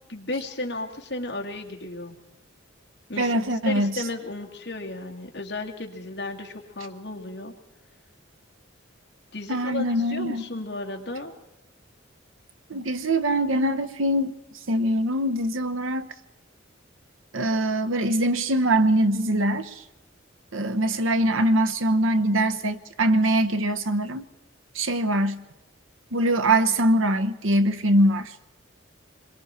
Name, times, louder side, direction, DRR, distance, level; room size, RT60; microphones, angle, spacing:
voice 1, 0.1-2.1 3.1-3.4 3.7-7.5 9.3-11.3, left 2 dB, 55° left, 2 dB, 2.3 m, -34 dB
voice 2, 3.2-4.0 9.5-10.5 12.7-14.4 14.7-16.1 17.3-19.8 20.5-24.2 24.7-25.4 26.1-28.3, right 1 dB, 80° right, 9 dB, 1.0 m, -23 dB
26.5 x 22.5 x 4.4 m, 0.95 s
head